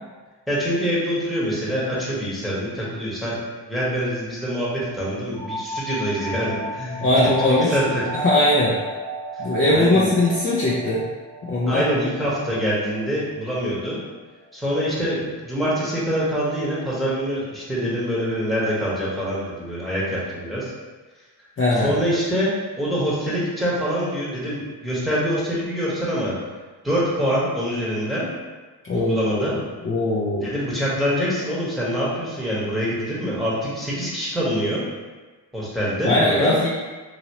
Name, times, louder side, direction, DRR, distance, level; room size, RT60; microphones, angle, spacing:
voice 1, 0.5-3.4 3.7-8.1 9.7-10.1 11.7-14.0 14.5-20.7 21.7-22.5 22.8-26.3 26.8-28.3 28.9-29.5 30.4-34.8 35.5-36.5, equal, ahead, -7 dB, 1.1 m, -25 dB
sound 1, 5.3-14.7, right 1 dB, 50° right, 0.8 m, -35 dB
voice 2, 7.0-7.8 8.1-8.8 9.4-11.0 11.5-11.8 21.6-21.9 28.8-29.5 29.8-30.5 36.1-36.7, left 1 dB, 30° left, -7 dB, 0.6 m, -20 dB
2.9 x 2.8 x 2.9 m, 1.3 s
cardioid pair, 80°, 45 cm